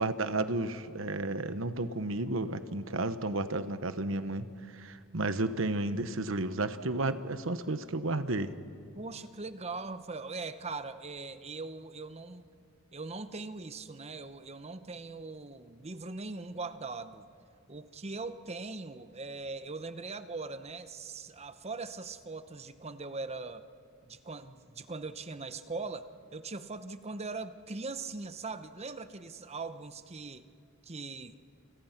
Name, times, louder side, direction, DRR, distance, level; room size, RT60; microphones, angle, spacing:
voice 1, 0.0-4.5 4.7-8.5, right 2 dB, 70° right, 11 dB, 1.1 m, -32 dB
voice 2, 8.9-12.5 12.9-17.3 17.7-23.7 24.0-30.5 30.8-31.4, right 3 dB, 30° right, 11 dB, 0.9 m, -41 dB
29.5 x 27.0 x 5.9 m, 2.3 s
head